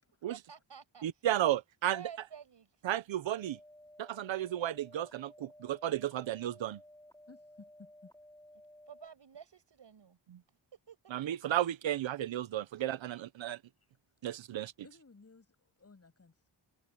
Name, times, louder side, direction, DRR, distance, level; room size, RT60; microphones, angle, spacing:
voice 1, 0.3-1.0 1.9-2.7 8.9-10.2 10.9-11.1 11.4-11.7, right 7 dB, 70° right, 7.4 m, -51 dB
voice 2, 1.0-2.0 2.8-3.6 4.0-6.8 11.1-13.6 14.2-14.7, right 12 dB, 85° right, 0.8 m, -33 dB
sound 1, 3.3-9.1, left 1 dB, 5° left, 5.1 m, -56 dB
voice 3, 7.3-8.1 14.8-16.5, left 3 dB, 35° left, 7.1 m, -58 dB
wide cardioid pair, 105°, 44 cm